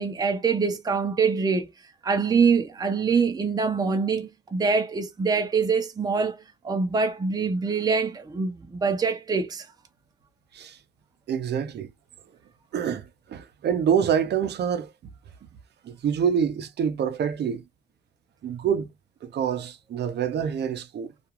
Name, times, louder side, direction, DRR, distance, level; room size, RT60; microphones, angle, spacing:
voice 1, 0.0-1.7 2.0-9.7, right 5 dB, 20° right, 0.6 m, -24 dB
voice 2, 11.3-11.9 12.7-14.9 15.8-17.6 18.4-18.9 19.2-21.1, right 8 dB, 60° right, 0.6 m, -26 dB
2.4 x 2.3 x 2.9 m
cardioid pair, 90°, 20 cm